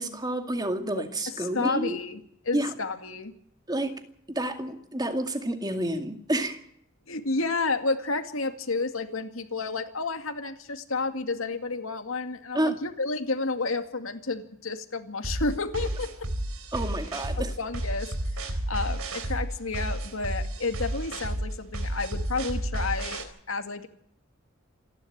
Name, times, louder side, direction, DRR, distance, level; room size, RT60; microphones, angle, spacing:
voice 1, 0.0-2.0 2.5-2.7 3.7-6.6 12.5-12.8 16.7-17.5, right 1 dB, 20° right, 2.2 m, -29 dB
voice 2, 1.4-3.3 7.1-16.1 17.6-18.1 18.7-23.9, left 3 dB, 70° left, 2.3 m, -31 dB
sound 1, 15.2-23.2, right 1 dB, 85° right, 3.8 m, -31 dB
28.0 x 11.5 x 8.7 m
head